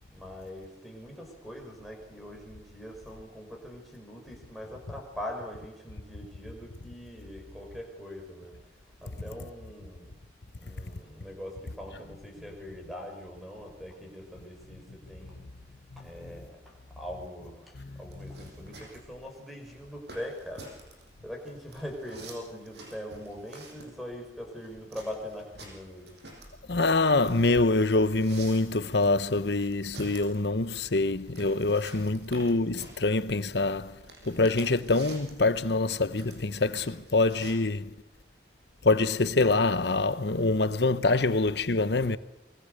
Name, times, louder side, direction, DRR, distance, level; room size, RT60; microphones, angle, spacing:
voice 1, 0.1-10.2 10.6-15.5 16.0-26.2, equal, ahead, 5.7 m, -42 dB
voice 2, 17.8-18.4 26.7-34.0 34.3-37.9 38.8-42.2, left 3 dB, 70° left, 1.0 m, -25 dB
sound 1, 18.1-37.5, right 2 dB, 70° right, 7.4 m, -49 dB
25.5 x 24.0 x 6.6 m
head